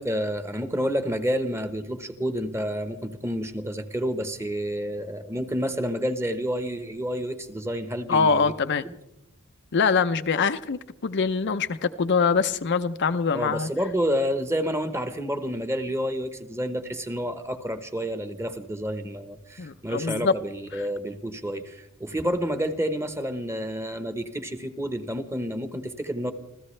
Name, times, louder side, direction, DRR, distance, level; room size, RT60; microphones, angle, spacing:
voice 1, 0.0-8.5 8.8-8.9 13.3-26.3, equal, 10° right, 1.1 m, -29 dB
voice 2, 8.1-8.8 9.7-13.7 19.6-20.4 20.7-20.8, left 5 dB, 50° left, 0.6 m, -24 dB
27.0 x 15.5 x 3.3 m
head